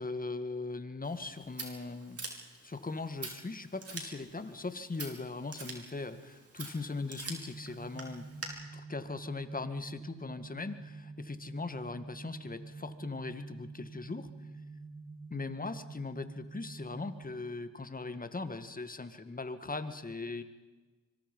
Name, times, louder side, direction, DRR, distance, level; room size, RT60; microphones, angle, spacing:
voice 1, 0.0-2.2 2.6-8.3 8.7-14.3 15.3-20.4, left 3 dB, 25° left, 10 dB, 2.0 m, -39 dB
Scissors, 1.0-8.5, right 3 dB, 45° right, 5.2 m, -46 dB
sound 1, 7.2-17.2, right 3 dB, 25° right, 4.7 m, -48 dB
25.5 x 23.5 x 5.5 m, 1.2 s
cardioid pair, 65°, 34 cm